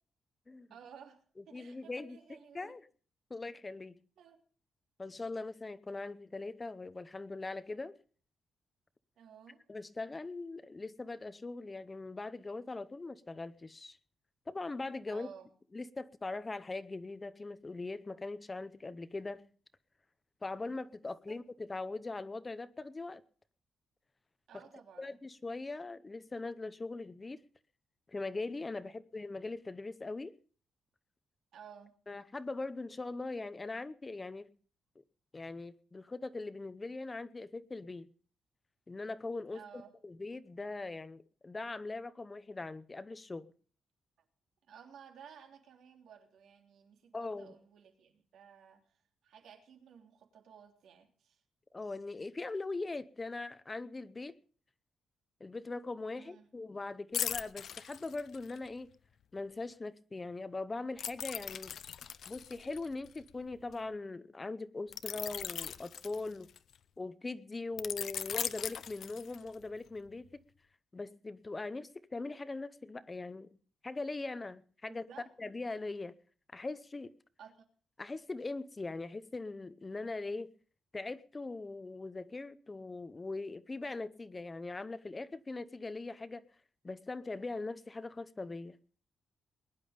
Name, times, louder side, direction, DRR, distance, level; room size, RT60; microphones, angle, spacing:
voice 1, 0.7-2.7 4.2-4.4 9.2-9.6 15.1-15.5 21.3-21.4 24.5-25.2 28.8-28.9 31.5-32.0 39.5-39.9 44.6-51.4 56.1-56.5 74.9-75.3 77.4-77.6, right 7 dB, 80° right, 3.3 m, -55 dB
voice 2, 1.5-2.2 2.5-2.8 3.3-4.0 5.0-8.0 9.7-14.0 14.5-15.3 15.7-19.4 20.4-23.2 25.0-27.4 28.1-30.3 32.1-34.5 35.3-38.1 38.9-43.5 47.1-47.5 51.7-54.4 55.4-58.9 59.3-61.7 62.3-66.5 67.0-70.3 70.9-73.6 73.8-75.1 75.4-76.1 76.5-77.1 78.0-80.5 80.9-86.5 86.8-88.8, left 3 dB, 20° left, 0.7 m, -41 dB
sound 1, 57.1-58.7 61.0-63.7 64.9-66.8 67.8-69.6 70.1-70.3, left 8 dB, 60° left, 0.7 m, -39 dB
21.0 x 10.5 x 5.2 m
wide cardioid pair, 155°, 0 cm